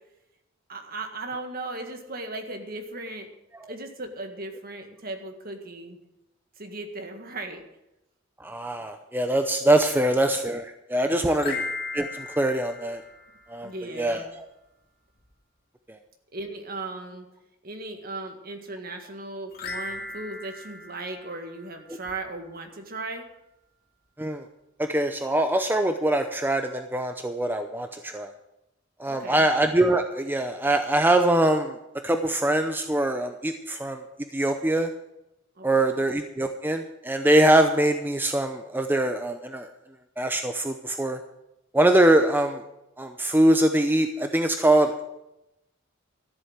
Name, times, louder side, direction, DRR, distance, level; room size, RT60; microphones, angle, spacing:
voice 1, 0.7-3.3 3.7-6.0 6.6-7.7 11.3-11.6 13.6-14.3 16.3-17.3 17.6-23.2 29.1-29.5 35.6-35.8, right 2 dB, 45° right, 5 dB, 1.9 m, -37 dB
voice 2, 8.4-11.7 11.9-13.0 13.5-13.7 14.0-14.5 15.9-16.0 24.2-24.5 24.8-28.3 29.0-31.8 32.0-34.0 34.3-34.9 35.6-39.7 40.2-41.2 41.7-42.6 43.0-45.0, right 1 dB, 10° right, 6 dB, 0.6 m, -23 dB
sound 1, 11.3-13.8 19.5-22.1, left 3 dB, 50° left, 2.3 m, -37 dB
13.5 x 7.8 x 8.0 m, 0.89 s
head